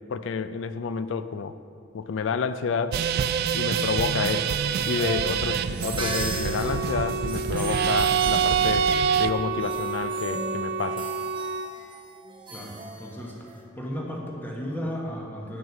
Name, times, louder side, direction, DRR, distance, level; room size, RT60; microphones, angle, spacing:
voice 1, 0.0-1.6 1.9-3.1 3.5-4.6 4.9-8.9 9.2-11.1, left 5 dB, 65° left, 13 dB, 0.4 m, -29 dB
sound 1, 2.9-9.3, right 8 dB, 55° right, 0.3 m, -25 dB
sound 2, 4.1-13.6, right 3 dB, 25° right, 1.1 m, -37 dB
Wind instrument woodwind instrument, 5.9-11.7, right 3 dB, 85° right, 0.6 m, -31 dB
voice 2, 12.5-13.5 13.7-15.6, equal, 10° left, -2 dB, 1.3 m, -34 dB
8.9 x 6.4 x 6.0 m, 2.5 s
head